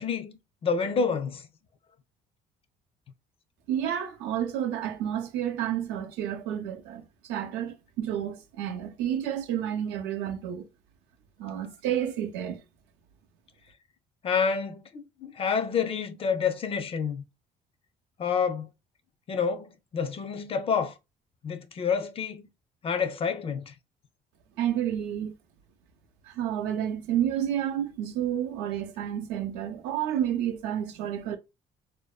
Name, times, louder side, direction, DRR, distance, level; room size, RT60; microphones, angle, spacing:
voice 1, 0.0-1.4 14.2-17.2 18.2-18.7 19.3-20.9 21.4-22.5 22.8-23.7, left 6 dB, 35° left, 0.4 m, -28 dB
voice 2, 3.7-10.7 11.4-12.6 24.6-25.3 26.3-31.4, right 10 dB, 90° right, 0.5 m, -30 dB
2.6 x 2.1 x 2.3 m
cardioid pair, 110°, 17 cm